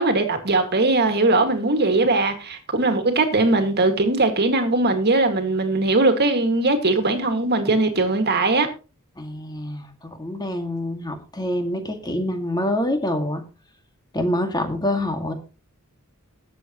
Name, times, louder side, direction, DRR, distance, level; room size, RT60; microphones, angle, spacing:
voice 1, 0.0-8.7, right 2 dB, 50° right, 2.1 m, -20 dB
voice 2, 9.2-13.4 14.1-15.3, left 1 dB, 20° left, 2.1 m, -26 dB
20.0 x 7.7 x 3.0 m
head